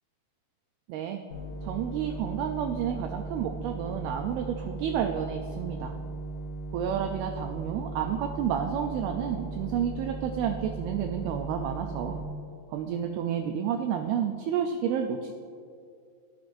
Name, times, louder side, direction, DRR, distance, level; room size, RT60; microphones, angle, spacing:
voice 1, 0.9-1.2 1.6-5.9 6.7-12.2 12.7-15.3, right 8 dB, 85° right, 4 dB, 2.2 m, -30 dB
sound 1, 1.3-12.2, right 2 dB, 70° left, 2.9 m, -37 dB
14.5 x 11.5 x 2.6 m, 2.3 s
omnidirectional pair, 4.9 m